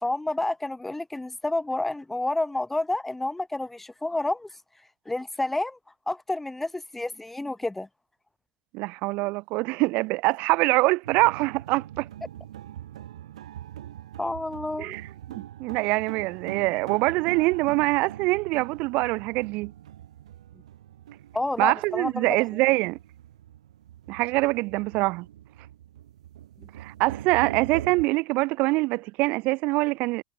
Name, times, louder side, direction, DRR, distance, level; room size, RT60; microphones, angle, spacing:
voice 1, 0.0-4.5 5.1-5.8 6.1-7.9 14.2-15.0 21.3-22.4, left 2 dB, 5° left, 1.2 m, -29 dB
voice 2, 8.7-12.1 14.8-15.0 15.3-19.7 21.6-23.0 24.1-25.3 26.8-30.2, right 23 dB, 45° right, 4.1 m, -24 dB
sound 1, 11.0-28.0, right 12 dB, 90° right, 4.0 m, -42 dB
supercardioid pair, 140°, 3 cm